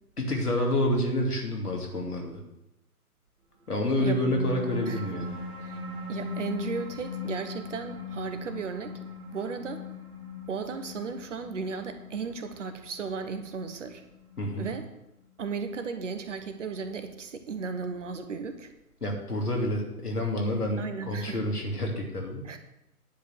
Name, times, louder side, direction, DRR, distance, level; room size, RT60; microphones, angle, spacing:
voice 1, 0.2-2.4 3.7-5.3 14.4-14.7 19.0-22.4, left 1 dB, 75° left, 0 dB, 2.9 m, -28 dB
sound 1, 3.8-14.7, left 4 dB, 75° right, 2.7 m, -39 dB
voice 2, 6.1-9.0 9.3-9.8 10.5-14.0 14.6-14.9 15.4-18.7 20.8-21.4 22.4-22.6, right 5 dB, 50° right, 8 dB, 1.3 m, -35 dB
10.0 x 5.5 x 7.8 m, 0.88 s
figure-of-eight pair, 125°, 46 cm